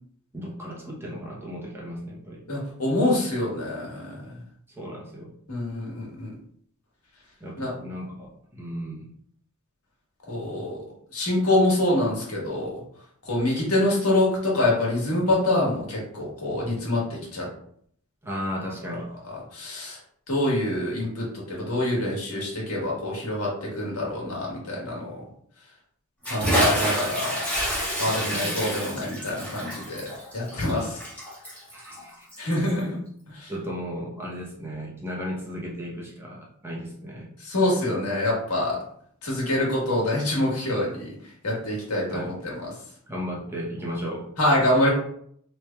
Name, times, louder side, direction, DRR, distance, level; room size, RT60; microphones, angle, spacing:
voice 1, 0.3-2.4 4.7-5.3 7.4-9.1 18.2-19.1 28.1-28.6 31.7-32.3 33.5-37.3 42.1-42.4 43.1-44.3, equal, 10° right, -3 dB, 0.8 m, -35 dB
voice 2, 2.5-4.2 5.5-6.3 7.6-7.7 10.3-10.8 11.1-12.8 13.2-17.5 19.5-20.0 20.3-25.2 26.2-27.3 28.0-31.0 32.4-33.0 33.3-33.5 37.4-38.8 39.2-41.1 41.4-42.6 44.4-44.9, left 1 dB, 85° left, -3 dB, 1.5 m, -25 dB
Bathtub (filling or washing) / Splash splatter, 26.2-32.8, equal, 5° left, 1.4 m, -28 dB
4.2 x 3.2 x 2.3 m, 0.65 s
head